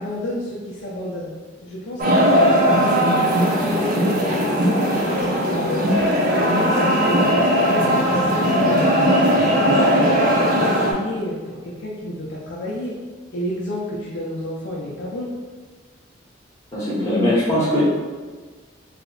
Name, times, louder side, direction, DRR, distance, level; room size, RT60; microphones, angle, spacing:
voice 1, 0.0-1.4 1.6-2.7 3.1-4.1 4.5-8.8 9.3-13.0 13.3-15.3, left 1 dB, 75° left, -6 dB, 0.5 m, -30 dB
sound 1, 2.0-10.9, equal, 45° right, 0.5 m, -18 dB
voice 2, 16.7-17.8, left 1 dB, 15° left, -8 dB, 0.8 m, -20 dB
3.2 x 2.0 x 3.7 m, 1.4 s
head